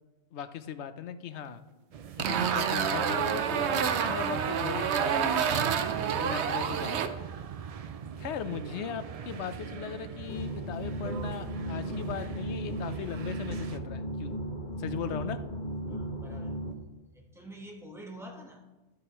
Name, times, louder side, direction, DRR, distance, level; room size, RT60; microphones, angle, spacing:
voice 1, 0.3-1.6 2.2-5.5 6.2-7.2 8.2-14.3 14.8-15.4, left 8 dB, 80° left, 11 dB, 0.9 m, -38 dB
sound 1, 1.9-13.8, right 7 dB, 60° right, 0.4 m, -40 dB
sound 2, 2.2-7.1, right 7 dB, 80° right, 1.0 m, -28 dB
sound 3, 10.3-16.7, right 1 dB, 45° left, 1.1 m, -36 dB
voice 2, 14.9-15.3 15.9-16.5 17.1-18.6, right 1 dB, ahead, 0 dB, 1.3 m, -47 dB
13.5 x 7.7 x 3.0 m, 1.1 s
omnidirectional pair, 1.1 m